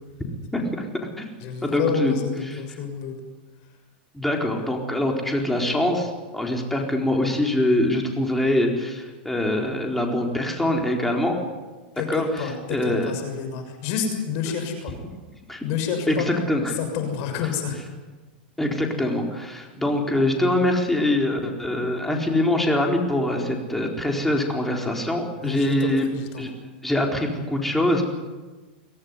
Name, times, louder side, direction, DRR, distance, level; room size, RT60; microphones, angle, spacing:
voice 1, 0.5-0.9 1.2-1.3 1.6-2.1 2.4-2.6 4.1-11.4 12.1-13.1 15.5-15.6 16.1-16.8 18.6-26.1 26.4-26.5 26.8-28.0, left 1 dB, 5° left, 1 dB, 4.2 m, -24 dB
voice 2, 1.4-3.1 11.9-14.9 15.6-16.3 16.8-17.8 25.4-26.5, left 7 dB, 50° left, 6 dB, 6.6 m, -28 dB
23.5 x 17.0 x 9.8 m, 1.3 s
supercardioid pair, 140°, 5 cm